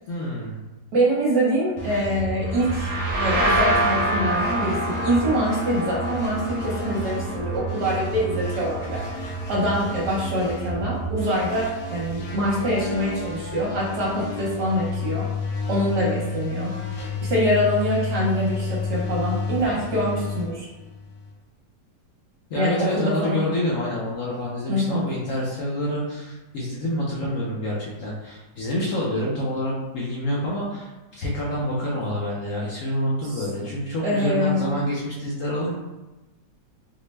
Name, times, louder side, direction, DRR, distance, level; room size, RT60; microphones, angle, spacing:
voice 1, 0.1-0.6 22.5-30.9 31.2-35.7, left 1 dB, 65° left, -5 dB, 0.8 m, -27 dB
voice 2, 0.9-15.3 15.7-16.7 17.2-20.7 22.5-23.5 24.7-25.0 33.3-33.4 34.0-34.7, equal, 70° right, -5 dB, 1.3 m, -25 dB
sound 1, 1.8-21.3, left 1 dB, 90° left, 1.5 m, -31 dB
sound 2, 2.4-10.0, right 1 dB, 50° right, 0.8 m, -27 dB
4.2 x 2.1 x 3.2 m, 1.1 s
omnidirectional pair, 2.0 m